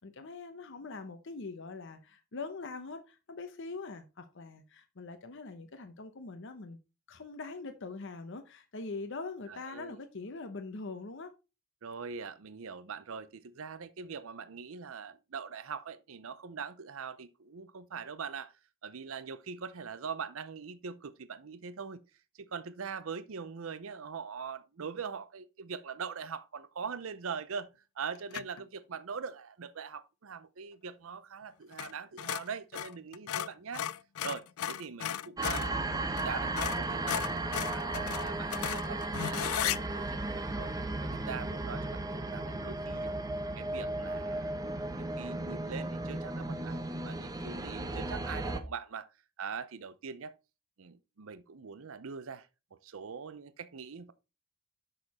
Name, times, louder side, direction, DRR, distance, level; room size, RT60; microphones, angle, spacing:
voice 1, 0.0-6.8 7.1-11.3, left 3 dB, 60° left, 0.8 m, -43 dB
voice 2, 9.5-10.0 11.8-18.5 18.8-22.0 22.3-27.7 28.0-33.9 34.2-40.7 41.1-43.1 43.6-44.5 45.0-49.1 49.4-50.3 50.8-54.1, right 6 dB, 70° right, 0.6 m, -42 dB
sound 1, 28.3-28.6 31.7-31.9 32.2-35.7 36.2-36.3 36.6-39.8, left 10 dB, 80° left, 0.4 m, -35 dB
sound 2, 35.4-48.6, right 2 dB, 15° right, 0.7 m, -35 dB
6.6 x 6.3 x 4.2 m
head